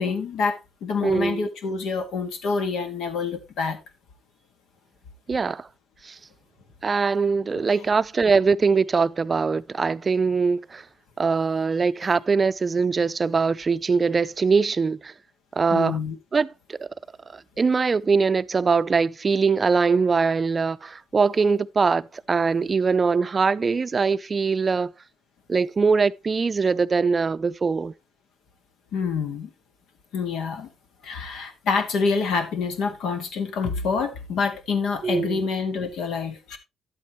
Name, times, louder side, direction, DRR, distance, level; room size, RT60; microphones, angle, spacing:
voice 1, 0.0-3.8 15.7-16.2 28.9-29.5 30.1-30.7 31.0-36.6, left 5 dB, 80° left, 1.8 m, -27 dB
voice 2, 1.0-1.5 5.3-5.7 6.0-6.2 6.8-10.8 11.2-15.1 15.5-16.0 16.3-16.9 17.3-24.9 25.5-27.9 35.0-35.5, right 5 dB, 35° right, 0.5 m, -22 dB
11.0 x 8.4 x 3.0 m
cardioid pair, 90°, 0 cm